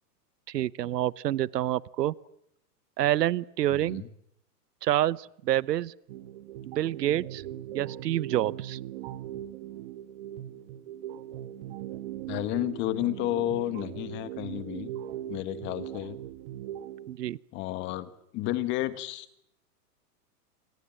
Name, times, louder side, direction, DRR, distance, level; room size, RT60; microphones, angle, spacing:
voice 1, 0.5-2.1 3.0-4.0 4.8-5.9 6.7-7.4 7.7-8.8 17.1-17.4, right 13 dB, 85° right, 22 dB, 1.0 m, -27 dB
voice 2, 3.7-4.1 12.3-14.9 15.3-16.2 17.5-19.4, left 14 dB, 25° left, 14 dB, 1.4 m, -32 dB
sound 1, 6.1-17.1, right 12 dB, 40° right, 1.4 m, -40 dB
28.0 x 25.5 x 7.7 m, 0.74 s
hypercardioid pair, 160°, 47 cm